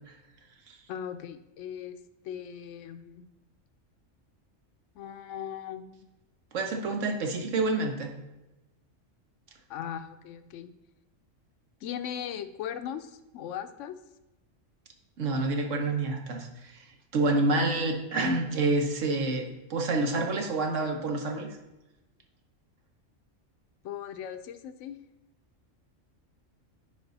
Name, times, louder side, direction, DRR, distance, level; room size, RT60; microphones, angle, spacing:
voice 1, 0.9-3.3 5.0-5.9 9.7-10.7 11.8-14.0 23.8-25.0, left 9 dB, 75° left, 10 dB, 0.9 m, -38 dB
voice 2, 6.5-8.1 15.2-16.7 17.1-21.5, right 2 dB, 70° right, 4 dB, 1.4 m, -28 dB
9.1 x 5.1 x 4.1 m, 1.0 s
omnidirectional pair, 1.3 m